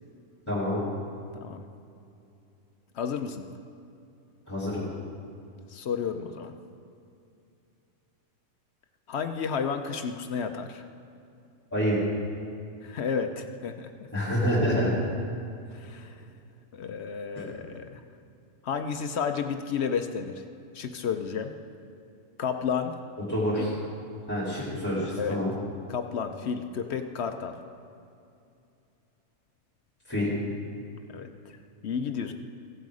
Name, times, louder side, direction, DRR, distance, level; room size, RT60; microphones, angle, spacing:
voice 1, 0.5-0.8 4.5-4.8 11.7-12.0 14.1-15.0 23.3-23.7 24.3-25.5 30.1-30.3, equal, 10° left, -9 dB, 3.2 m, -27 dB
voice 2, 2.9-3.5 5.7-6.5 9.1-10.8 12.8-14.1 15.7-16.1 16.7-18.0 18.6-20.4 20.7-21.5 22.4-23.0 25.2-25.4 25.9-27.6 31.1-31.6 31.8-32.3, left 6 dB, 60° left, 7 dB, 0.8 m, -32 dB
16.0 x 7.9 x 4.8 m, 2.6 s
omnidirectional pair, 1.5 m